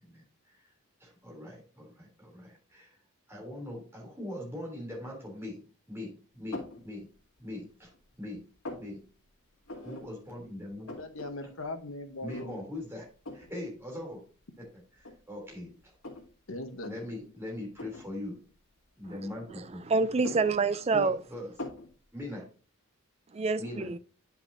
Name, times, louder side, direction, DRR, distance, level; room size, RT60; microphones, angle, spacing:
voice 1, 1.0-2.9 3.3-7.1 7.4-8.4 8.7-9.0 9.8-10.9 12.2-13.1 13.3-14.2 14.6-14.7 15.0-15.7 16.8-18.4 19.0-19.8 20.9-21.5 22.1-22.4 23.6-23.9, left 1 dB, 10° right, 3.0 m, -41 dB
sound 1, 6.5-6.8 7.4-8.0 8.3-8.9 9.7-10.0 10.4-10.5 10.7-11.3 11.6-11.7 12.3-12.7 13.3-13.5 14.4-14.5 15.0-16.3 16.7-16.9 17.7-18.1 19.0-19.7 20.1-21.1 21.6-21.9, left 2 dB, 80° left, 2.3 m, -42 dB
voice 2, 10.9-12.6 16.5-17.0, left 2 dB, 60° left, 1.0 m, -39 dB
voice 3, 19.9-21.2 23.3-24.0, right 4 dB, 30° right, 0.4 m, -27 dB
9.7 x 5.9 x 2.7 m
head